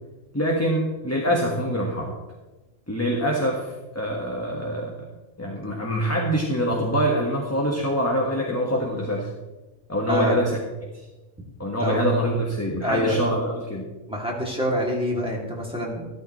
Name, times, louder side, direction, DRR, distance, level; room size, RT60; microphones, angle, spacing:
voice 1, 0.3-2.1 2.9-5.1 5.4-9.3 9.9-10.6 11.6-13.9, equal, 10° left, -1 dB, 1.4 m, -25 dB
voice 2, 10.1-10.4 11.8-12.1 12.8-13.2 14.1-16.1, equal, 5° right, -3 dB, 2.6 m, -26 dB
14.5 x 13.0 x 3.2 m, 1.1 s
omnidirectional pair, 1.3 m